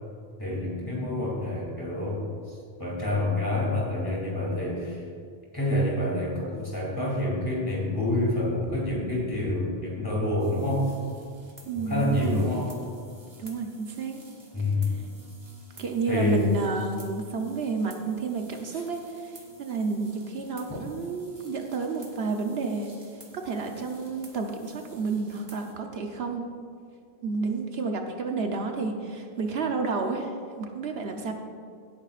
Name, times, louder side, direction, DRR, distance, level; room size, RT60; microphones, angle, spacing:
voice 1, 0.4-5.1 5.5-10.9 11.7-12.7 14.5-14.9 16.1-16.4 18.7-18.8, left 1 dB, 20° left, -4 dB, 2.8 m, -27 dB
sound 1, 10.4-25.7, equal, 40° right, 1.6 m, -52 dB
voice 2, 11.7-12.5 13.4-14.2 15.8-22.9 23.3-26.5 27.2-31.3, right 4 dB, 70° right, 3 dB, 1.1 m, -30 dB
16.5 x 9.4 x 2.5 m, 2.2 s
omnidirectional pair, 1.1 m